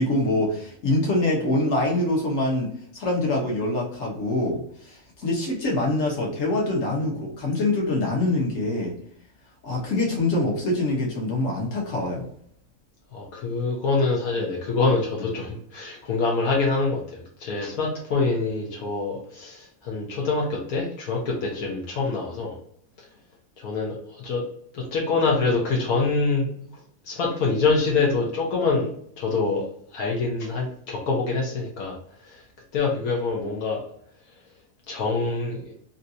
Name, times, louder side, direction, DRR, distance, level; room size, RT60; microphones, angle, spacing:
voice 1, 0.0-8.9 9.6-12.2, left 2 dB, 65° left, -2 dB, 1.4 m, -25 dB
voice 2, 13.1-22.6 23.6-24.4 24.7-26.5 27.0-28.9 29.2-29.6 29.9-32.0 32.2-32.4 32.7-33.8 34.9-35.7, left 3 dB, 85° left, -2 dB, 1.3 m, -25 dB
3.2 x 2.7 x 2.6 m, 0.65 s
omnidirectional pair, 1.5 m